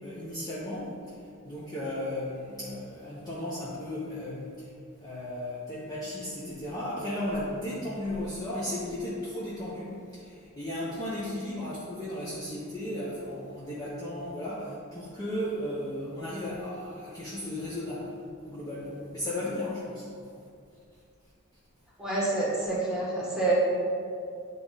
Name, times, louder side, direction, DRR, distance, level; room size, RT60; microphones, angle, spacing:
voice 1, 0.0-4.7 5.0-18.1 18.4-20.2, left 1 dB, 15° left, -9 dB, 1.0 m, -35 dB
voice 2, 22.0-23.5, right 2 dB, 5° right, -7 dB, 1.8 m, -27 dB
10.5 x 3.7 x 4.1 m, 2.4 s
head